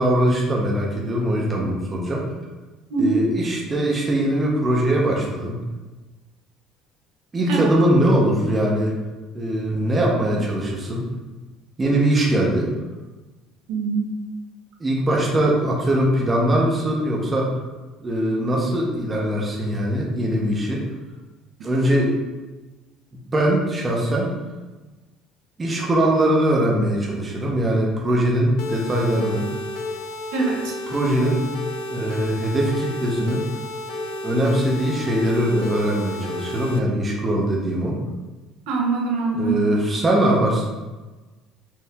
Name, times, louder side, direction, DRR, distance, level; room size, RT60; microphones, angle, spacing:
voice 1, 0.0-2.3 3.0-5.6 7.3-8.9 9.3-11.1 11.8-12.7 14.8-17.6 18.0-20.8 21.6-22.1 23.1-24.4 25.6-29.5 30.9-31.4 31.9-33.4 34.2-38.0 39.3-40.6, right 1 dB, 20° right, -2 dB, 0.7 m, -21 dB
voice 2, 13.7-14.1 30.3-30.7 38.7-39.6, right 4 dB, 85° right, -1 dB, 0.9 m, -23 dB
sound 1, 28.6-36.8, left 2 dB, 75° left, 0.4 m, -32 dB
4.5 x 2.6 x 3.4 m, 1.2 s
cardioid pair, 140°, 0 cm